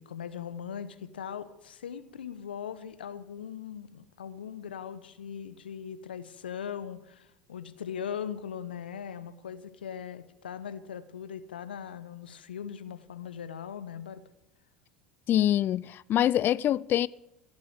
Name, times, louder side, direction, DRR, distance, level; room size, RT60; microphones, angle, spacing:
voice 1, 0.0-14.2, left 8 dB, 80° left, 0.9 m, -40 dB
voice 2, 15.3-17.1, left 12 dB, 40° left, 0.4 m, -25 dB
16.0 x 7.4 x 7.8 m
hypercardioid pair, 75°, 5 cm